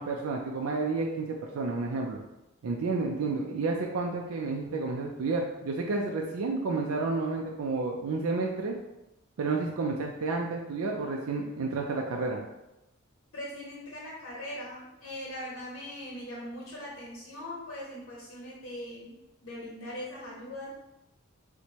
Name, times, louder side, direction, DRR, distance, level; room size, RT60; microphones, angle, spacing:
voice 1, 0.0-2.2 2.6-8.8 9.4-12.4, right 3 dB, 75° right, 0 dB, 0.4 m, -31 dB
voice 2, 13.3-19.1 19.4-20.7, left 1 dB, 60° left, -5 dB, 0.8 m, -40 dB
4.3 x 2.1 x 2.8 m, 0.92 s
head